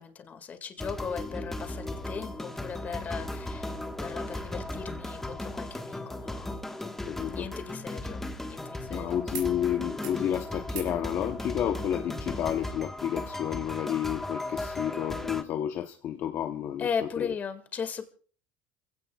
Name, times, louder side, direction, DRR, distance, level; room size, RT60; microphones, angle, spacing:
voice 1, 0.0-6.9 7.2-8.2 8.5-9.2 16.8-18.1, left 6 dB, 30° left, 2.0 m, -37 dB
sound 1, 0.8-15.4, left 1 dB, 5° left, 1.4 m, -36 dB
voice 2, 6.8-7.5 8.9-16.9 17.2-17.3, left 10 dB, 50° left, 0.9 m, -31 dB
sound 2, 9.3-9.5 9.8-10.2 10.7-11.0 12.3-12.4, right 9 dB, 80° right, 5.6 m, -45 dB
27.5 x 16.5 x 2.4 m
supercardioid pair, 125°, 5 cm